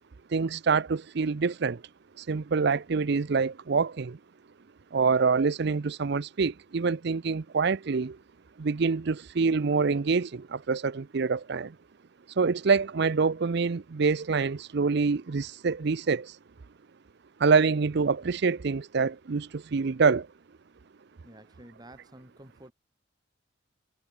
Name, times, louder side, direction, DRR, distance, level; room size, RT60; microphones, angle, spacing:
voice 1, 0.3-1.8 2.2-4.2 4.9-8.2 8.6-11.7 12.4-16.4 17.4-20.3, right 4 dB, 60° right, 0.5 m, -26 dB
voice 2, 21.2-22.7, right 1 dB, 20° right, 4.9 m, -51 dB
head